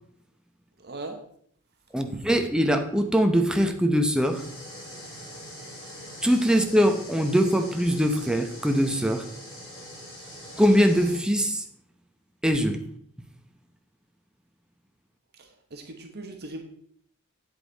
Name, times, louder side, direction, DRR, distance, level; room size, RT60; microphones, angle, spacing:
voice 1, 0.8-1.2 15.4-16.6, right 2 dB, 50° right, 3 dB, 1.2 m, -39 dB
voice 2, 1.9-4.4 6.2-9.3 10.6-11.6 12.4-12.8, equal, 5° right, 5 dB, 0.8 m, -22 dB
sound 1, 4.2-11.2, equal, 25° left, 4.2 m, -43 dB
8.6 x 8.0 x 4.0 m, 0.66 s
head